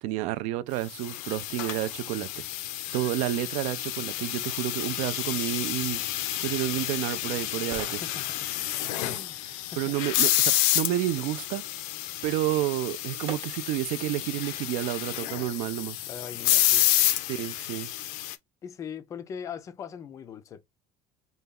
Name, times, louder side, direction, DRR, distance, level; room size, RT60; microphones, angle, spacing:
voice 1, 0.0-2.4 2.9-6.0 6.4-8.0 9.8-11.6 12.2-16.0 17.3-17.9, right 14 dB, 55° right, 0.4 m, -30 dB
sound 1, 0.9-18.4, left 14 dB, 75° left, 0.5 m, -29 dB
voice 2, 8.0-8.4 9.0-9.4 9.7-9.9 16.1-16.9 18.6-20.6, left 7 dB, 25° left, 0.4 m, -40 dB
sound 2, 13.3-14.0 14.5-14.6, right 6 dB, 40° right, 0.8 m, -46 dB
4.0 x 2.3 x 3.5 m
cardioid pair, 180°, 14 cm